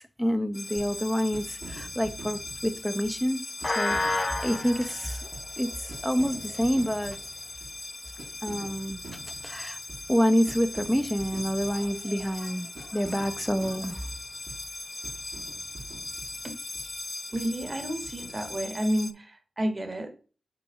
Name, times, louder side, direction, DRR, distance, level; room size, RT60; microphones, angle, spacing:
voice 1, 0.0-3.4 3.8-5.3 5.6-7.2 8.4-9.8 10.1-14.1, equal, 5° left, 9 dB, 0.8 m, -28 dB
sound 1, 0.5-19.1, left 2 dB, 35° left, 0.5 m, -37 dB
sound 2, 0.8-1.0 1.3-3.3 3.6-5.6 5.9-7.8 8.2-10.2 10.5-12.4 12.8-14.8 15.0-16.9 17.3-19.0, right 2 dB, 80° right, 2.4 m, -46 dB
voice 2, 17.3-20.1, equal, 35° right, 6 dB, 1.3 m, -30 dB
6.3 x 4.2 x 3.6 m, 0.36 s
cardioid pair, 65°, 0 cm